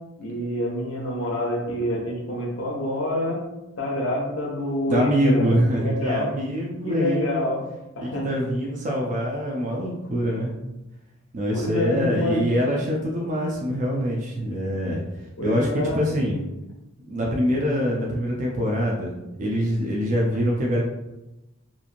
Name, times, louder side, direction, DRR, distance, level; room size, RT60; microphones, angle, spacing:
voice 1, 0.2-3.4 3.8-6.3 6.9-7.6 7.9-8.3 11.5-12.4 15.4-16.0, left 1 dB, 85° left, -1 dB, 0.7 m, -27 dB
voice 2, 4.9-7.5 8.0-10.5 11.3-15.0 15.4-15.7 15.9-16.4 17.1-19.1 19.4-20.8, equal, 40° right, -2 dB, 0.4 m, -24 dB
2.9 x 2.5 x 2.5 m, 0.98 s
head